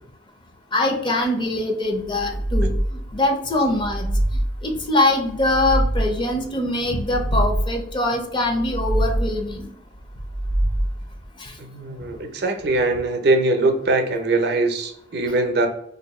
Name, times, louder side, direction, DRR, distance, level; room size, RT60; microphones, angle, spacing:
voice 1, 0.7-4.1 4.6-9.6 11.4-11.5, left 1 dB, 25° left, 3 dB, 0.6 m, -23 dB
sound 1, 2.1-3.2 3.7-4.8 5.3-6.4 6.9-8.0 8.5-9.5 10.1-11.2, right 1 dB, 85° left, 1.2 m, -24 dB
voice 2, 11.6-15.7, right 2 dB, 65° right, 5 dB, 0.6 m, -21 dB
2.6 x 2.6 x 4.1 m, 0.74 s
head